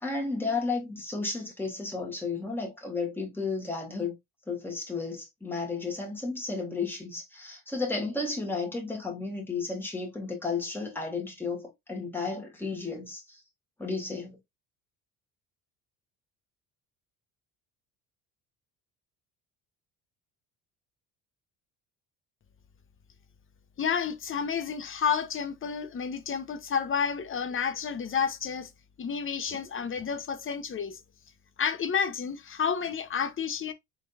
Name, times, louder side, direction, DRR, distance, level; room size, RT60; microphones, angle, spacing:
voice 1, 0.0-4.1 4.5-13.4 13.8-14.4, left 4 dB, 5° left, 2.2 m, -33 dB
voice 2, 23.8-28.7 29.0-31.0 31.6-33.7, left 6 dB, 30° left, 0.9 m, -30 dB
4.0 x 3.9 x 2.5 m
supercardioid pair, 95°, 39 cm